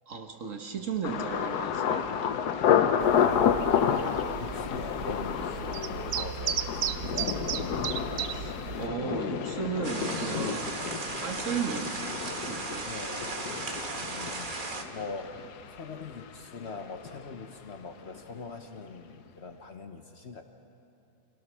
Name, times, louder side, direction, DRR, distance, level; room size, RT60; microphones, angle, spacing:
voice 1, 0.1-2.1 8.3-10.8 11.1-11.9 12.4-12.9, right 6 dB, 55° right, 4 dB, 1.6 m, -35 dB
Thunder, 1.0-16.8 17.1-17.7 18.1-18.4, left 8 dB, 80° left, 1.4 m, -30 dB
sound 1, 3.0-8.9, right 9 dB, 85° right, 1.3 m, -35 dB
voice 2, 3.2-7.6 12.8-13.4 14.0-14.6 14.9-15.3 15.7-20.4, left 4 dB, 50° left, 5 dB, 1.1 m, -42 dB
sound 2, 9.8-14.8, right 3 dB, 35° right, 1.2 m, -36 dB
26.0 x 17.5 x 6.3 m, 2.7 s
omnidirectional pair, 1.7 m